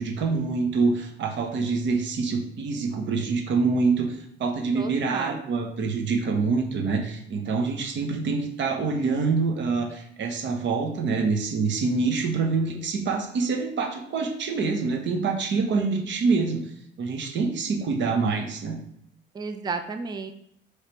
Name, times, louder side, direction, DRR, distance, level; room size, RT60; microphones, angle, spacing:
voice 1, 0.0-18.8, right 4 dB, 70° right, 4 dB, 0.9 m, -26 dB
voice 2, 4.7-5.4 12.4-12.8 19.3-20.3, right 4 dB, 20° right, 7 dB, 0.4 m, -33 dB
4.8 x 3.2 x 3.0 m, 0.72 s
cardioid pair, 90°, 20 cm